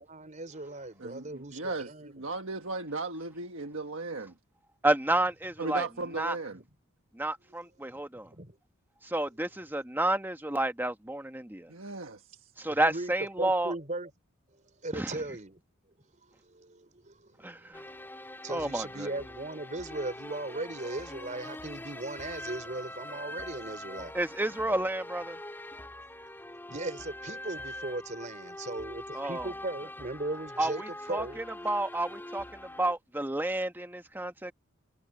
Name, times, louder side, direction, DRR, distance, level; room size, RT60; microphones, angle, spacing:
voice 1, 0.0-2.1 7.9-8.0 8.3-8.6 12.7-13.1 13.4-14.1 14.8-15.6 16.3-24.1 26.7-31.4, right 2 dB, 40° right, 4.5 m, -38 dB
voice 2, 1.0-4.3 5.6-6.6 11.7-12.5, right 3 dB, 75° right, 1.5 m, -37 dB
voice 3, 4.8-5.9 6.2-6.4 7.1-8.3 9.0-11.7 12.6-13.7 14.9-15.1 17.4-17.8 18.5-19.1 24.1-25.4 29.1-29.5 30.6-34.5, right 1 dB, 10° right, 1.3 m, -30 dB
sound 1, 17.7-32.9, left 1 dB, 10° left, 3.1 m, -43 dB
head